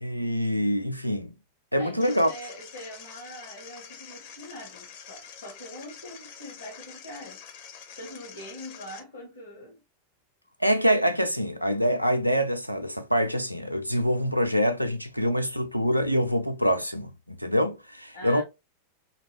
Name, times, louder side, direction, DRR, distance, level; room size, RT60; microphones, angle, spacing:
voice 1, 0.0-1.3 1.7-2.3 10.6-18.4, equal, 90° right, 0.4 m, -25 dB
voice 2, 1.8-7.4 8.0-9.8 18.1-18.4, left 1 dB, 70° left, 1.1 m, -43 dB
sound 1, 2.0-9.0, left 7 dB, 50° left, 0.6 m, -46 dB
2.8 x 2.5 x 2.9 m
figure-of-eight pair, 90°, 0 cm